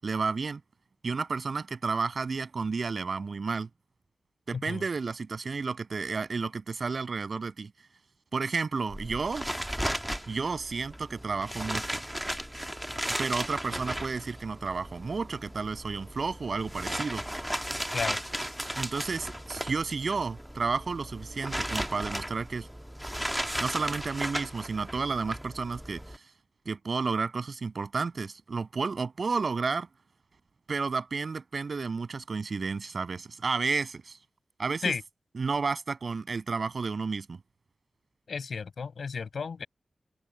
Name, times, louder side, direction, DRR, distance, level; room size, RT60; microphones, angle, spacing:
voice 1, 0.0-0.6 1.0-3.7 4.5-7.7 8.3-9.5 10.3-12.0 13.2-17.2 18.8-22.7 23.6-26.0 26.7-29.9 30.7-34.2 34.6-34.9 35.4-37.4, right 4 dB, 55° right, 7.1 m, -31 dB
sound 1, 8.9-26.2, equal, 5° right, 1.4 m, -36 dB
voice 2, 38.3-39.7, left 5 dB, 75° left, 6.2 m, -33 dB
wide cardioid pair, 130°, 0 cm